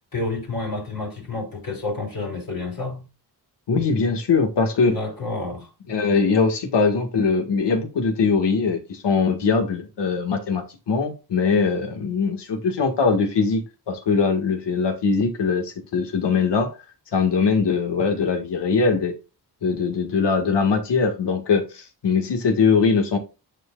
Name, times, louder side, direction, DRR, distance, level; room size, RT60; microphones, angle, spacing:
voice 1, 0.1-3.1 4.8-5.7, left 3 dB, 55° left, 3.5 m, -29 dB
voice 2, 3.7-5.0 5.9-13.6 13.9-16.7 17.1-19.1 19.6-23.2, left 5 dB, 85° left, 1.9 m, -21 dB
11.0 x 4.7 x 2.5 m
wide cardioid pair, 130°, 41 cm